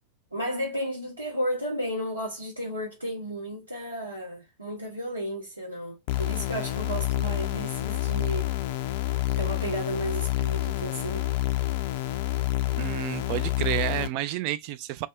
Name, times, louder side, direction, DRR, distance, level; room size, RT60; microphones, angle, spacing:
voice 1, 0.3-8.5 9.4-11.6, equal, 85° right, 1.0 m, -33 dB
sound 1, 6.1-14.1, left 16 dB, 50° left, 0.4 m, -28 dB
voice 2, 12.8-15.1, right 14 dB, 45° right, 0.3 m, -30 dB
2.6 x 2.4 x 3.2 m
figure-of-eight pair, 90°, 0 cm